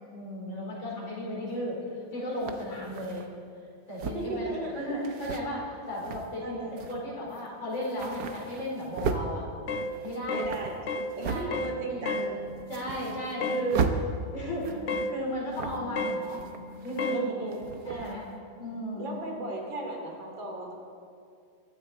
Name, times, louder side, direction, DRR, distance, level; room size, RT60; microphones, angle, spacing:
voice 1, 0.1-3.3 3.9-4.5 4.8-6.6 6.9-9.5 10.0-10.5 11.2-12.0 12.7-16.5 16.8-17.4 17.8-18.2 18.6-19.2, equal, 75° left, -4 dB, 5.1 m, -35 dB
sound 1, 1.5-1.6 2.4-3.3 3.9-4.4 5.0-5.4 5.9-6.4 6.8-7.0 7.3-7.5 7.7-9.3 9.8-11.5 11.9-12.0 12.4-13.4 13.7-14.0 14.5-15.0 15.5-15.9 16.2-17.2 17.5-18.2, right 5 dB, 60° right, 1.4 m, -35 dB
voice 2, 4.1-5.1 6.4-6.8 10.3-10.8 11.2-12.4 17.1-18.2 19.0-20.7, right 2 dB, 75° right, 0 dB, 3.5 m, -36 dB
sound 2, 9.7-9.9 10.3-10.5 10.9-11.1 11.5-11.8 12.0-12.3 13.4-13.7 14.9-15.1 16.0-16.2 17.0-17.2, left 2 dB, 50° left, 0.9 m, -30 dB
sound 3, 11.5-19.2, right 2 dB, 30° left, 3.1 m, -48 dB
23.0 x 13.5 x 4.3 m, 2.3 s
omnidirectional pair, 2.1 m